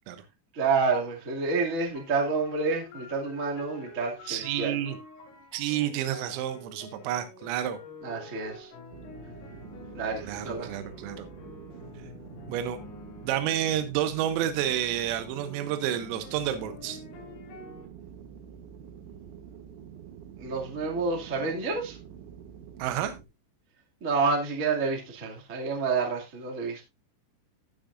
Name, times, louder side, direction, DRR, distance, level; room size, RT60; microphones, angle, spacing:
voice 1, 0.5-4.8 8.0-8.7 9.9-10.7 20.4-22.0 24.0-26.8, right 4 dB, 50° right, 0.9 m, -29 dB
sound 1, 1.9-13.8 14.6-17.9, left 3 dB, 80° left, 6.0 m, -47 dB
voice 2, 4.3-5.0 5.5-7.8 10.2-11.3 12.4-12.8 13.2-17.0 22.8-23.1, right 11 dB, 90° right, 3.6 m, -30 dB
sound 2, 8.9-23.2, right 8 dB, 70° right, 3.2 m, -47 dB
18.0 x 6.3 x 2.5 m
omnidirectional pair, 5.9 m